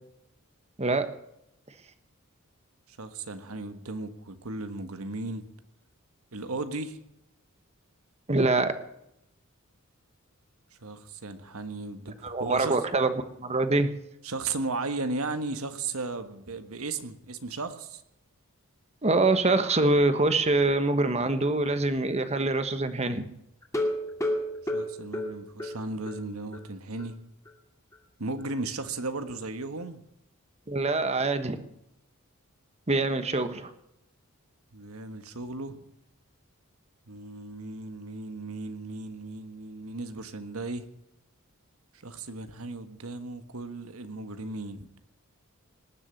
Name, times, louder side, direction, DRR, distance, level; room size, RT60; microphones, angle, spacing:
voice 1, 2.9-5.4 6.3-7.0 10.8-12.8 14.2-18.0 24.6-27.1 28.2-30.0 34.7-35.8 37.1-40.9 42.0-44.9, right 3 dB, 80° right, 9 dB, 1.5 m, -35 dB
voice 2, 8.3-8.7 12.2-13.9 19.0-23.3 30.7-31.6 32.9-33.7, right 2 dB, 30° right, 10 dB, 1.3 m, -25 dB
sound 1, 23.6-26.2 26.5-26.6 27.0-27.1 27.5-27.6, left 1 dB, 15° left, 2.3 m, -31 dB
19.5 x 7.2 x 9.7 m, 0.81 s
head